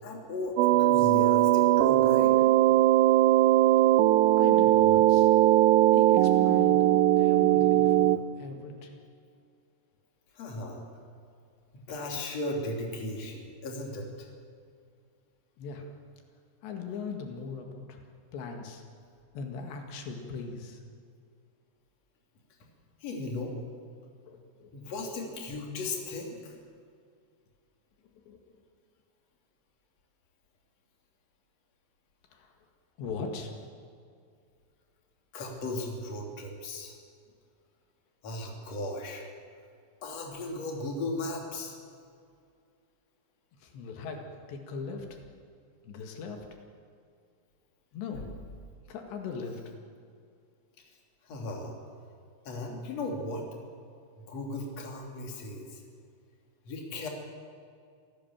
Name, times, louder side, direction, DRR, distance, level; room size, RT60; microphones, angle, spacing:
voice 1, 0.0-2.4 10.3-10.8 11.7-14.1 23.0-23.6 24.7-26.6 35.3-36.9 38.2-39.2 40.0-41.8 48.1-48.3 51.2-51.8 52.5-53.5 54.2-55.8 56.7-57.1, left 2 dB, 40° left, 1 dB, 3.8 m, -36 dB
sound 1, 0.6-8.2, right 14 dB, 85° right, 2.0 m, -20 dB
voice 2, 4.4-5.3 5.9-6.9 7.2-9.0 15.6-15.9 16.6-18.0 18.3-18.8 19.4-20.8 24.3-24.7 28.3-28.4 33.0-33.5 43.6-44.2 44.5-45.2 45.9-46.4 47.9-48.3 48.9-49.6, left 5 dB, 85° left, 3 dB, 4.2 m, -39 dB
26.5 x 17.0 x 7.4 m, 2.3 s
omnidirectional pair, 4.9 m